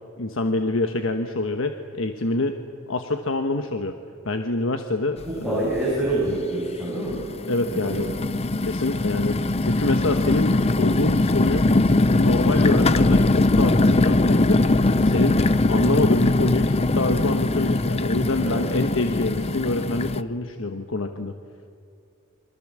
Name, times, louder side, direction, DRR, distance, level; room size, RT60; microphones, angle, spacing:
voice 1, 0.2-2.6 2.9-3.9 4.2-5.7 7.5-8.1 8.6-11.7 12.1-14.6 15.0-21.3, left 2 dB, 90° left, 6 dB, 1.2 m, -26 dB
sound 1, 5.2-5.3 5.7-6.4 7.0-20.2, left 2 dB, 30° left, 0.6 m, -21 dB
voice 2, 5.2-7.2 7.8-8.0 18.4-18.6, right 1 dB, 5° right, -7 dB, 7.1 m, -26 dB
28.0 x 23.5 x 7.5 m, 2.5 s
head